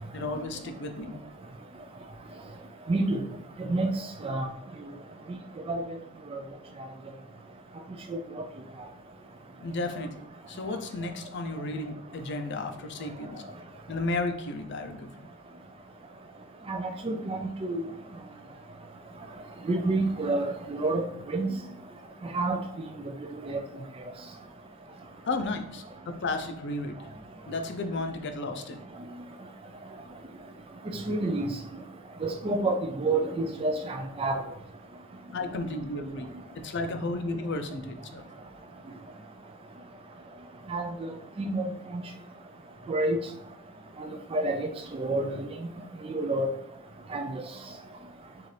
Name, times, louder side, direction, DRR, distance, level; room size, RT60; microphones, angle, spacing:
voice 1, 0.1-1.2 9.6-13.5 13.9-15.3 22.0-22.3 23.8-23.9 25.3-27.0 27.5-28.8 35.3-36.3 36.6-38.2 45.8-45.9, left 2 dB, 55° left, 7 dB, 0.5 m, -33 dB
voice 2, 2.9-3.2 3.6-3.9 4.2-4.5 5.7-5.8 6.3-6.4 8.1-8.2 16.7-17.8 19.7-21.0 21.3-21.5 22.3-22.6 23.4-23.6 30.9-31.5 32.2-34.4 40.7-41.1 41.4-42.0 42.9-43.2 44.0-45.5 46.1-46.5 47.1-47.4, right 2 dB, 25° right, 5 dB, 0.3 m, -28 dB
6.6 x 2.5 x 3.2 m, 0.75 s
head